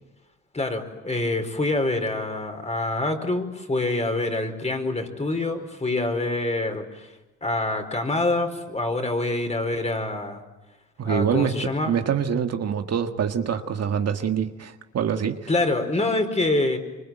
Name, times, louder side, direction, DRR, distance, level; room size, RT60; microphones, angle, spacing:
voice 1, 0.5-7.1 7.4-10.4 11.0-11.9 15.5-16.8, left 2 dB, 20° left, 6 dB, 4.7 m, -26 dB
voice 2, 11.0-15.4, right 8 dB, 55° right, 6 dB, 1.8 m, -25 dB
25.5 x 25.0 x 9.0 m, 1.1 s
cardioid pair, 90°, 30 cm